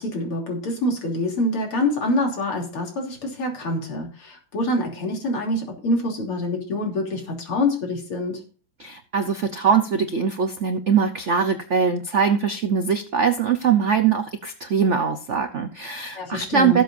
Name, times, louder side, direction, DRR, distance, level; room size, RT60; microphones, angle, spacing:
voice 1, 0.0-8.4 16.2-16.8, left 1 dB, 80° left, 1 dB, 3.9 m, -26 dB
voice 2, 8.8-16.8, right 6 dB, 65° right, 8 dB, 0.7 m, -22 dB
18.0 x 7.7 x 2.6 m, 0.39 s
omnidirectional pair, 2.4 m